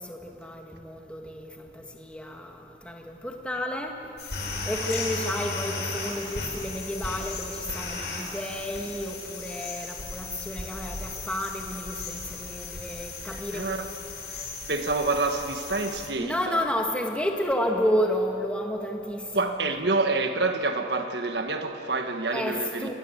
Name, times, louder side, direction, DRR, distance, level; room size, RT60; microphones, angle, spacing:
voice 1, 0.0-4.1 4.6-13.8 16.2-19.6 22.3-22.9, equal, 5° left, 2 dB, 1.9 m, -31 dB
sound 1, 4.2-16.1, left 3 dB, 75° left, 5.3 m, -36 dB
voice 2, 13.3-13.9 14.7-16.6 19.3-22.9, right 3 dB, 75° right, 6 dB, 1.5 m, -27 dB
27.0 x 20.0 x 8.3 m, 2.9 s
head